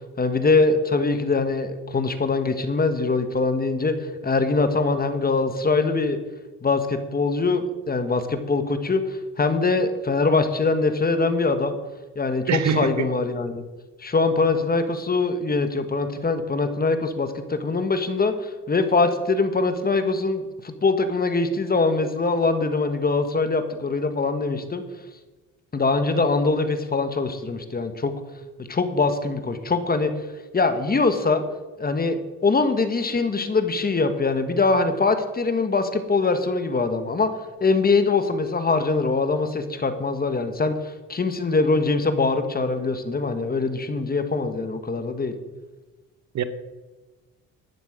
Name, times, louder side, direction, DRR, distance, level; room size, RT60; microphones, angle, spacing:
voice 1, 0.2-6.2 6.6-11.8 12.1-13.6 14.0-24.8 25.7-28.1 28.6-30.1 30.5-31.4 31.8-37.3 37.6-45.3, left 3 dB, 30° left, 9 dB, 1.5 m, -23 dB
voice 2, 12.5-13.0 46.3-46.4, right 6 dB, 60° right, 12 dB, 1.0 m, -23 dB
12.5 x 9.0 x 5.1 m, 1.2 s
cardioid pair, 85°, 31 cm